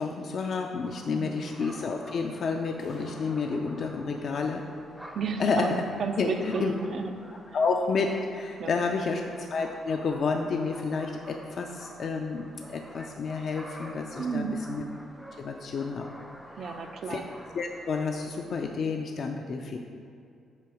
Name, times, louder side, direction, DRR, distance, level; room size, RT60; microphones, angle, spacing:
voice 1, 0.0-4.6 5.4-5.8 6.2-6.7 7.5-14.8 15.4-16.1 16.7-17.2 17.5-19.8, left 4 dB, 55° left, 3 dB, 0.4 m, -30 dB
sound 1, 0.8-18.8, equal, 5° right, 0.5 m, -48 dB
voice 2, 1.1-1.6 5.1-7.1 7.5-7.6 8.6-8.7 14.2-14.7 16.6-17.3, right 5 dB, 60° right, 5 dB, 0.5 m, -33 dB
sound 2, 2.8-3.8, left 2 dB, 80° left, 1.0 m, -51 dB
7.5 x 3.0 x 4.8 m, 2.4 s
cardioid pair, 90°, 0 cm